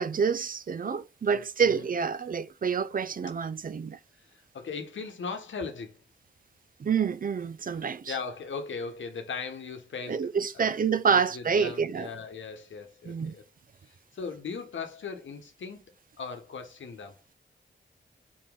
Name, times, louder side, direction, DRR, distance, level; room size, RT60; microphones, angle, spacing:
voice 1, 0.0-4.0 6.8-8.1 10.1-12.1 13.1-13.3, right 6 dB, 45° right, 0.4 m, -27 dB
voice 2, 1.2-1.9 4.5-6.0 8.1-10.3 10.5-10.8 11.1-13.4 14.1-15.9 16.2-17.2, left 5 dB, 90° left, 1.0 m, -38 dB
4.4 x 3.0 x 3.6 m
wide cardioid pair, 80°, 19 cm